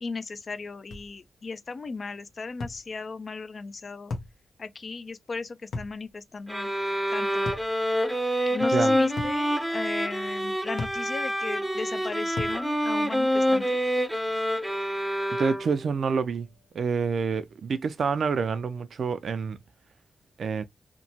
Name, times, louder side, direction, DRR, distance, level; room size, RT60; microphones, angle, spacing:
voice 1, 0.0-4.1 4.6-6.7 7.1-7.5 8.5-13.8, left 4 dB, 50° left, 0.4 m, -36 dB
sound 1, 0.9-1.1 2.6-2.8 4.1-4.4 5.7-6.0 7.5-7.7 9.2-9.4 10.8-11.0 12.4-12.6, left 3 dB, 75° left, 0.8 m, -34 dB
sound 2, 6.5-15.9, equal, 5° right, 0.6 m, -27 dB
voice 2, 15.3-16.5 16.7-19.6 20.4-20.6, right 5 dB, 70° right, 0.4 m, -27 dB
2.9 x 2.2 x 2.7 m
cardioid pair, 65°, 0 cm